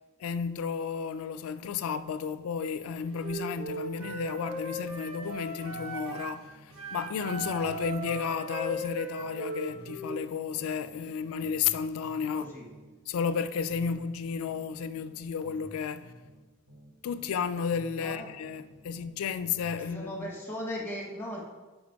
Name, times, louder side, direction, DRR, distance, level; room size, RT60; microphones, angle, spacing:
voice 1, 0.2-12.5 13.1-16.1 17.0-20.3, left 6 dB, 85° left, 0.3 m, -32 dB
Wind instrument woodwind instrument, 3.1-6.4 6.7-10.1, right 2 dB, 80° right, 1.1 m, -38 dB
sound 1, 4.0-5.4 5.7-9.4 9.7-13.4 13.7-17.4 17.7-19.8, equal, 60° right, 1.9 m, -53 dB
voice 2, 12.3-12.6 18.0-18.3 19.8-21.4, equal, 10° left, 1.1 m, -37 dB
5.0 x 4.8 x 4.6 m
head